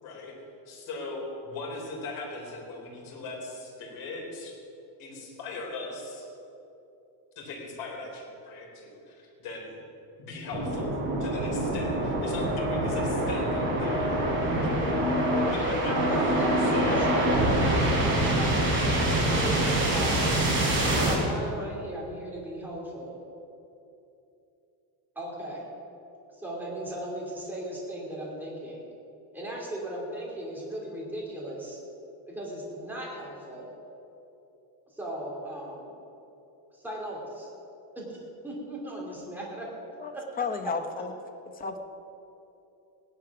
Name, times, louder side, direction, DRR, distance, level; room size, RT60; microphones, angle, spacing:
voice 1, 0.0-4.5 5.0-6.3 7.4-9.8 10.2-10.9 11.2-14.2 14.6-14.9 15.1-16.3 16.7-17.1, left 2 dB, 50° left, -1 dB, 3.8 m, -38 dB
sound 1, 10.5-21.2, right 1 dB, 25° right, 3.6 m, -25 dB
voice 2, 15.5-18.8 19.1-20.3 20.9-23.2 25.1-25.7 26.3-28.8 29.3-31.8 32.3-33.7 34.9-35.9 36.7-37.5 37.9-38.2 38.4-39.8 40.1-40.2, right 1 dB, 5° right, -4 dB, 2.8 m, -37 dB
voice 3, 40.0-41.1 41.5-41.8, left 5 dB, 20° left, 6 dB, 0.8 m, -33 dB
17.0 x 11.0 x 5.9 m, 2.9 s
cardioid pair, 170°, 47 cm